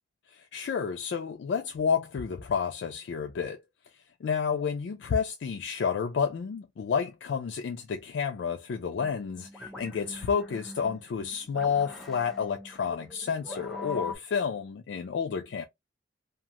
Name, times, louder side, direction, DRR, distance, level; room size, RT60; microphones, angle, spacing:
voice 1, 0.3-3.6 4.2-15.6, left 6 dB, 75° left, 0.3 m, -30 dB
sound 1, 9.0-14.2, left 2 dB, ahead, 0.6 m, -43 dB
2.4 x 2.3 x 2.8 m
head